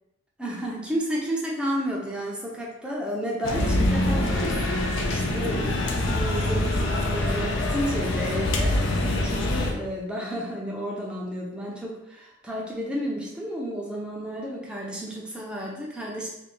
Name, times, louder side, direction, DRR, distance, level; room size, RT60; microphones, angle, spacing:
voice 1, 0.4-16.3, equal, 5° right, -4 dB, 0.6 m, -32 dB
sound 1, 3.4-9.7, left 1 dB, 60° left, 0.5 m, -25 dB
3.4 x 2.3 x 3.7 m, 0.88 s
head